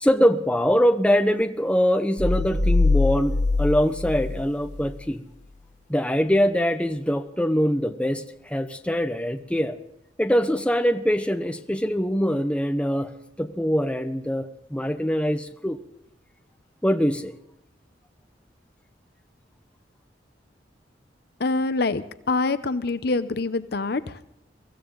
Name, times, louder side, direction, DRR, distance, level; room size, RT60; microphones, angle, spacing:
voice 1, 0.0-5.2 5.9-9.8 10.2-13.1 13.4-15.8 16.8-17.3, equal, 5° left, 7 dB, 0.9 m, -23 dB
sound 1, 2.2-5.0, left 3 dB, 45° left, 2.4 m, -23 dB
voice 2, 21.4-24.3, left 3 dB, 60° left, 13 dB, 0.7 m, -25 dB
23.0 x 15.0 x 3.9 m, 0.77 s
head